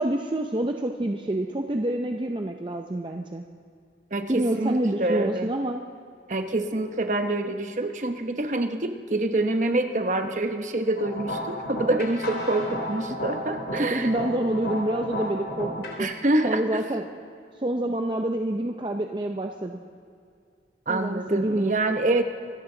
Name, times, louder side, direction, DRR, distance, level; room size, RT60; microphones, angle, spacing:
voice 1, 0.0-3.4 4.3-5.8 13.9-16.1 16.4-17.1 17.6-19.8 20.9-21.7, right 1 dB, 25° right, 3 dB, 0.6 m, -27 dB
voice 2, 4.1-5.5 6.3-14.1 16.0-16.8 20.9-22.2, right 2 dB, 45° right, 7 dB, 1.0 m, -26 dB
sound 1, 11.0-16.0, left 1 dB, 75° left, 3.1 m, -33 dB
25.0 x 14.0 x 3.9 m, 2.4 s
head